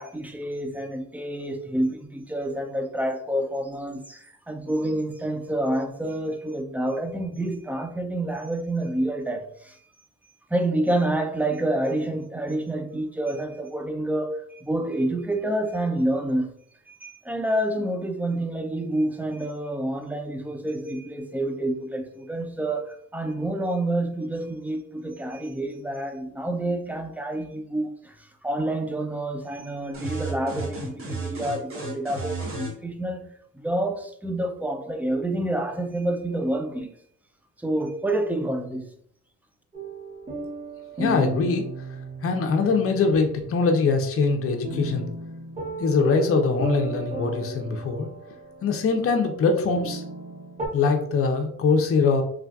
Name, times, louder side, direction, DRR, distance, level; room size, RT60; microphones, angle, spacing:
voice 1, 0.0-9.8 10.5-16.5 16.9-33.2 33.5-36.9 37.6-38.9, right 1 dB, 5° right, 0.4 m, -28 dB
sound 1, 29.9-32.8, right 3 dB, 45° right, 1.1 m, -33 dB
sound 2, 39.7-50.7, right 2 dB, 25° right, 0.9 m, -35 dB
voice 2, 41.0-41.6 42.2-45.1 45.8-48.1 48.6-50.0 50.7-52.2, left 4 dB, 50° left, 0.6 m, -22 dB
3.2 x 2.4 x 2.3 m
cardioid pair, 90°, 30 cm